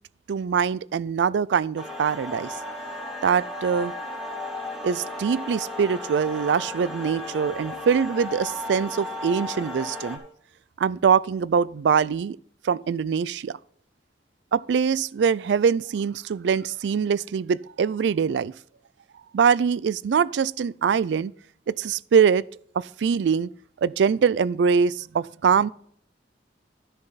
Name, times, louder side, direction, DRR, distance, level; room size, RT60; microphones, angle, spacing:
voice 1, 0.3-2.5 3.2-3.9 4.8-10.2 10.8-12.4 12.6-13.6 14.5-18.5 19.3-21.3 21.7-22.4 22.7-23.5 23.8-25.7, right 6 dB, 70° right, 0.3 m, -23 dB
sound 1, 1.8-10.2, left 1 dB, ahead, 1.9 m, -35 dB
13.0 x 6.5 x 4.0 m
head